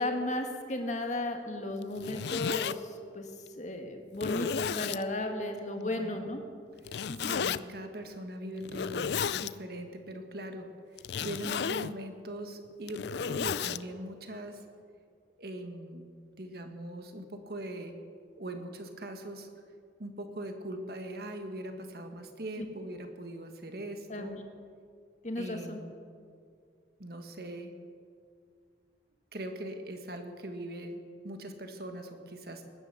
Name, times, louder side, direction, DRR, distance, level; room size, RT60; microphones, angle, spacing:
voice 1, 0.0-3.2 3.6-6.4 7.1-7.3 22.6-22.7 24.1-24.4 25.2-25.8, left 1 dB, 40° left, 4 dB, 1.7 m, -34 dB
Zipper (clothing), 1.8-2.7 3.5-3.6 4.1-5.0 6.8-7.6 8.6-9.5 11.0-11.9 12.7-13.8, left 7 dB, 65° left, 0.4 m, -33 dB
voice 2, 5.8-6.2 6.8-14.6 15.4-16.1 16.4-17.9 18.3-19.5 20.0-24.4 25.4-25.9 27.0-27.7 29.3-32.6, right 1 dB, 55° right, 6 dB, 1.7 m, -41 dB
19.0 x 10.5 x 6.9 m, 2.2 s
head